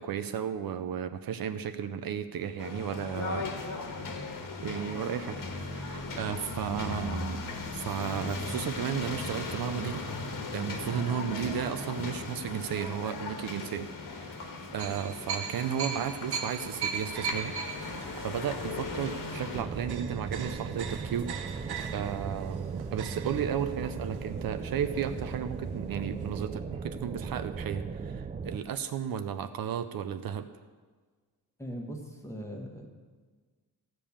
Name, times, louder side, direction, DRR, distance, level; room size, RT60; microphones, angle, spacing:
voice 1, 0.0-3.5 4.6-5.4 5.7-7.4 7.7-10.1 10.5-17.5 18.2-30.5, right 8 dB, 65° right, 10 dB, 0.7 m, -34 dB
sound 1, 2.6-19.6, left 3 dB, 60° left, 1.5 m, -38 dB
sound 2, 9.5-11.8 12.4-12.6 14.8-25.6 25.8-25.9 26.2-26.4, right 6 dB, 80° right, 1.0 m, -40 dB
sound 3, 19.5-28.6, right 5 dB, 20° right, 0.3 m, -37 dB
voice 2, 31.6-32.9, equal, 5° left, 1 dB, 1.4 m, -40 dB
14.5 x 5.4 x 8.6 m, 1.5 s
wide cardioid pair, 175°, 38 cm